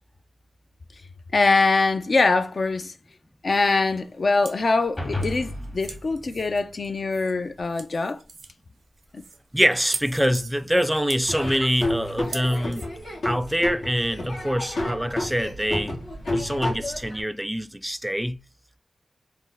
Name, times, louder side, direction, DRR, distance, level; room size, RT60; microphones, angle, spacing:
voice 1, 1.3-2.9 3.4-8.2 9.1-9.2, left 3 dB, 65° left, 0.4 m, -23 dB
sound 1, 3.9-12.9, right 4 dB, 90° right, 0.5 m, -42 dB
sound 2, 5.0-7.5, left 1 dB, 35° left, 1.0 m, -34 dB
voice 2, 9.5-12.9 13.2-16.0 16.3-18.4, equal, 10° right, 0.3 m, -25 dB
Laughter / Drum, 11.2-17.2, left 1 dB, 85° left, 0.9 m, -30 dB
2.5 x 2.1 x 3.9 m
cardioid pair, 40°, 0 cm